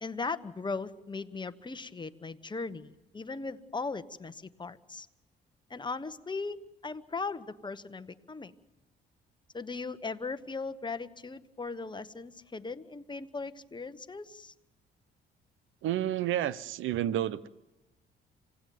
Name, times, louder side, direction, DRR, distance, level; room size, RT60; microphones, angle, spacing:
voice 1, 0.0-5.1 5.7-6.6 6.8-8.5 9.5-14.5, left 4 dB, 25° left, 11 dB, 1.2 m, -38 dB
voice 2, 15.8-17.5, right 12 dB, 85° right, 17 dB, 0.8 m, -30 dB
27.0 x 18.0 x 9.4 m, 1.0 s
cardioid pair, 90°, 20 cm